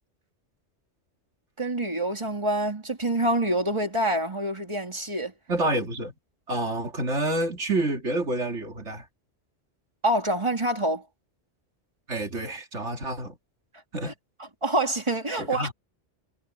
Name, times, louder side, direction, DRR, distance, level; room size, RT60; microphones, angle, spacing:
voice 1, 1.6-5.3 10.0-11.0 14.6-15.7, right 1 dB, 25° right, 3.2 m, -26 dB
voice 2, 5.5-6.1 6.5-9.0 12.1-13.3 13.9-14.1 15.4-15.7, right 2 dB, 90° right, 3.0 m, -28 dB
omnidirectional pair, 1.2 m